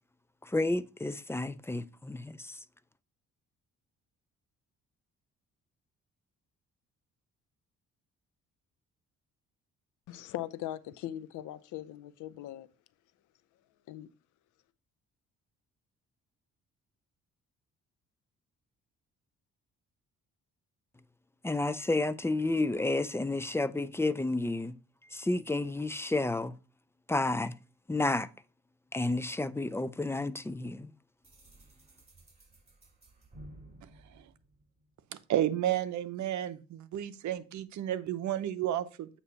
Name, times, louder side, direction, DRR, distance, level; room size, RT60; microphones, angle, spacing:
voice 1, 0.4-2.6 21.4-24.8 25.1-26.5 27.1-27.5 27.9-28.3 28.9-30.9, left 2 dB, 10° left, 0.4 m, -31 dB
voice 2, 10.1-12.7 13.9-14.1, left 13 dB, 80° left, 0.6 m, -40 dB
sound 1, 31.2-35.1, right 1 dB, 20° right, 3.5 m, -54 dB
voice 3, 35.3-39.1, right 11 dB, 70° right, 0.7 m, -32 dB
8.3 x 2.9 x 5.5 m
cardioid pair, 90°, 30 cm